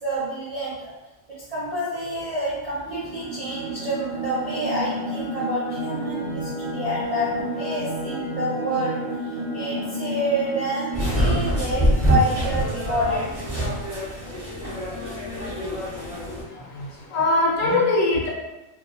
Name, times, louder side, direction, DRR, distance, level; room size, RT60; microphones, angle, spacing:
voice 1, 0.0-0.9 1.5-7.3 7.6-9.0 9.2-13.3, right 1 dB, 50° right, -9 dB, 0.4 m, -28 dB
sound 1, 2.7-11.9, right 1 dB, 75° right, 1.0 m, -31 dB
sound 2, 10.9-16.4, equal, 30° right, 1.1 m, -25 dB
voice 2, 15.9-18.3, left 2 dB, 70° left, -2 dB, 1.0 m, -23 dB
2.7 x 2.5 x 2.5 m, 1.0 s
omnidirectional pair, 1.4 m